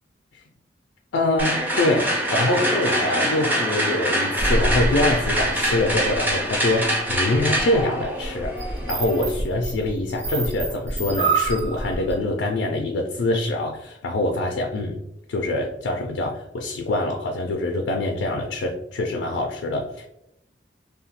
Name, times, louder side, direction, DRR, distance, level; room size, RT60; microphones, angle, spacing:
voice 1, 1.1-15.0 15.3-20.1, left 2 dB, 85° left, 2 dB, 0.3 m, -24 dB
sound 1, 1.4-9.3, equal, 10° right, 0.5 m, -25 dB
sound 2, 4.4-6.5 7.1-12.2, right 3 dB, 85° right, 0.7 m, -27 dB
2.8 x 2.2 x 2.8 m, 0.81 s
head